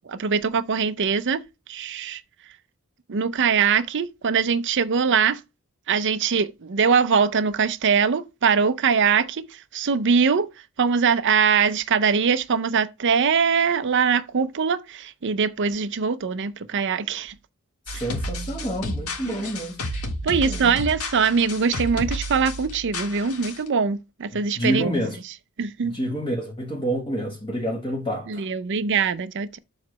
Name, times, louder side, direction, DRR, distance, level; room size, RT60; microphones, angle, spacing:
voice 1, 0.1-1.4 1.7-2.2 3.1-5.4 5.9-10.5 10.8-17.3 19.2-19.5 20.2-24.9 25.6-25.9 28.3-29.6, right 6 dB, 55° right, 0.6 m, -22 dB
sound 1, 17.9-23.7, equal, 80° left, 1.7 m, -31 dB
voice 2, 17.9-19.8 20.5-20.8 24.6-25.2 25.8-28.5, equal, 25° left, 1.5 m, -28 dB
7.4 x 3.2 x 6.0 m
head